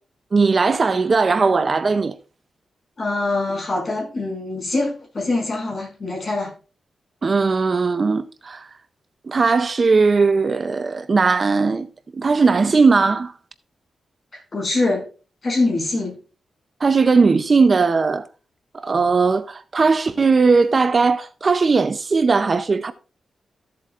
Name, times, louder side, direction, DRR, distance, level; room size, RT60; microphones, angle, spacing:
voice 1, 0.3-2.1 7.2-8.7 9.3-11.9 12.1-13.3 16.8-18.3 18.7-22.9, right 4 dB, 35° right, 0.5 m, -18 dB
voice 2, 3.0-6.5 14.3-15.1 15.4-16.2, left 2 dB, 35° left, 6.0 m, -24 dB
15.0 x 7.6 x 2.4 m
wide cardioid pair, 135°, 0 cm